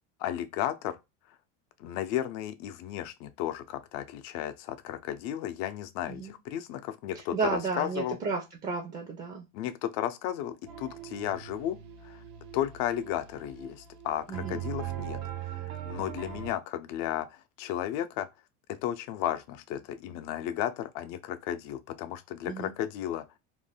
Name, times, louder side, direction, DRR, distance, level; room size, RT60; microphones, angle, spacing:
voice 1, 0.2-1.0 1.8-8.2 9.5-11.8 12.0-12.2 12.5-18.3 18.7-23.3, left 11 dB, 65° left, 0.5 m, -34 dB
voice 2, 7.3-9.4 14.3-14.6 22.5-22.7, right 4 dB, 25° right, 0.4 m, -32 dB
sound 1, 10.7-16.5, right 11 dB, 75° right, 0.6 m, -40 dB
2.6 x 2.1 x 3.3 m
cardioid pair, 140°, 35 cm